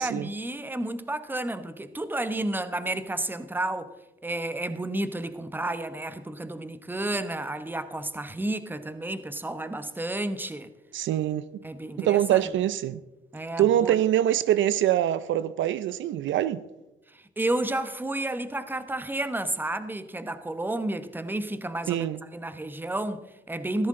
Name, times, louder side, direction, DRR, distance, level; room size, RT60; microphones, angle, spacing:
voice 1, 0.0-3.9 4.2-10.7 11.6-12.5 13.3-14.0 17.1-23.9, right 1 dB, 10° right, 0.9 m, -31 dB
voice 2, 10.9-11.4 12.0-13.0 13.6-16.6 21.9-22.2, right 12 dB, 70° right, 0.5 m, -24 dB
15.5 x 13.0 x 3.7 m
cardioid pair, 90°, 20 cm